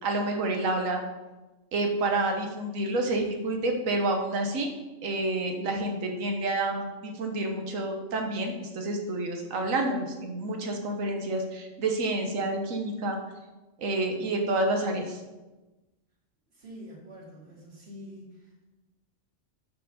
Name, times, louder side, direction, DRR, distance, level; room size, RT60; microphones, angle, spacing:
voice 1, 0.0-1.0 1.7-4.7 5.0-13.2 13.8-15.2, right 2 dB, 90° right, 3 dB, 1.4 m, -29 dB
voice 2, 16.5-18.6, equal, 50° right, -4 dB, 2.4 m, -46 dB
6.4 x 4.6 x 6.4 m, 1.1 s
omnidirectional pair, 1.3 m